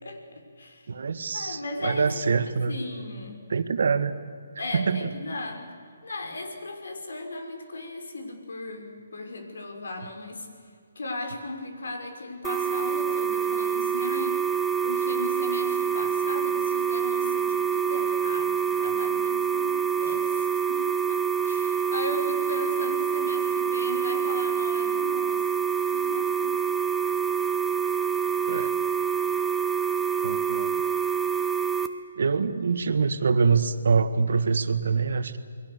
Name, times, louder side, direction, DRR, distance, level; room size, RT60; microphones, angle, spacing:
voice 1, 0.0-0.9 1.3-2.0 2.7-3.5 4.6-5.7 6.0-10.5 11.0-14.5 14.8-25.4 25.8-26.5, left 2 dB, 75° left, 4 dB, 5.6 m, -37 dB
voice 2, 0.9-2.8 3.5-4.2 4.7-5.1 28.5-28.8 30.2-30.8 32.2-35.4, right 5 dB, 65° right, 11 dB, 1.7 m, -25 dB
sound 1, 12.4-31.9, right 7 dB, 5° right, 1.2 m, -26 dB
29.0 x 22.0 x 6.9 m, 2.3 s
hypercardioid pair, 160°, 0 cm